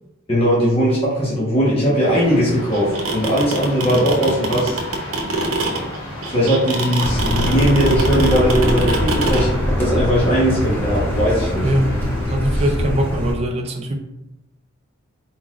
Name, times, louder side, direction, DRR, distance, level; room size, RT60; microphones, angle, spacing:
voice 1, 0.3-4.8 6.3-11.7, equal, 25° left, -7 dB, 1.1 m, -19 dB
sound 1, 2.0-12.2, equal, 75° left, 1.3 m, -34 dB
sound 2, 2.7-9.4, right 2 dB, 80° right, 0.8 m, -23 dB
Car, 7.0-13.3, equal, 10° left, 0.8 m, -22 dB
voice 2, 11.6-11.9 12.2-14.0, equal, 30° right, 3 dB, 0.5 m, -21 dB
4.5 x 3.9 x 2.4 m, 0.91 s
head